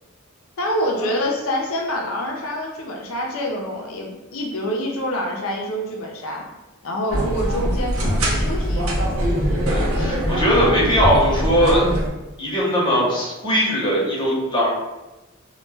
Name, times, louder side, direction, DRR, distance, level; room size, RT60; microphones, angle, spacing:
voice 1, 0.6-6.4 6.8-9.1 9.9-10.3, equal, 80° left, 0 dB, 0.6 m, -26 dB
sound 1, 7.1-12.1, equal, 85° right, 0.6 m, -22 dB
voice 2, 9.7-11.9 12.4-14.7, equal, 25° left, -7 dB, 0.8 m, -20 dB
2.3 x 2.1 x 3.2 m, 1.0 s
head